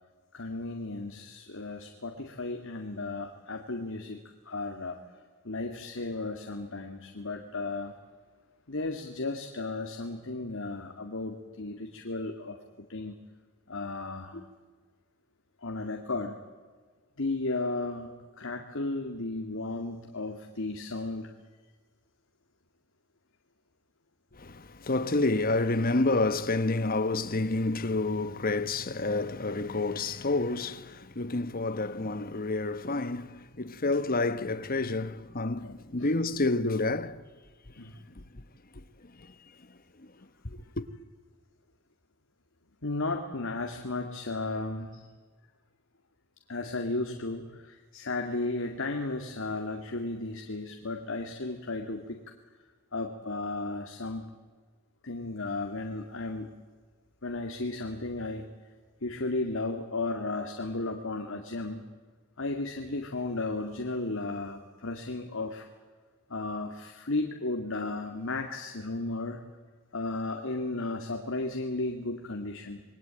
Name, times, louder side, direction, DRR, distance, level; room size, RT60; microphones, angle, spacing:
voice 1, 0.3-5.0 5.4-7.9 8.7-12.6 12.9-13.2 13.7-14.4 15.6-16.4 17.2-21.3 35.6-36.1 37.8-38.0 42.8-45.1 46.5-52.2 52.9-54.3 55.0-56.5 57.2-58.5 59.0-61.8 62.4-65.6 66.3-69.4 69.9-72.8, left 2 dB, 60° left, 2.2 m, -34 dB
voice 2, 24.4-37.2 40.4-40.8, left 2 dB, 40° left, 1.2 m, -29 dB
27.5 x 21.5 x 9.0 m
head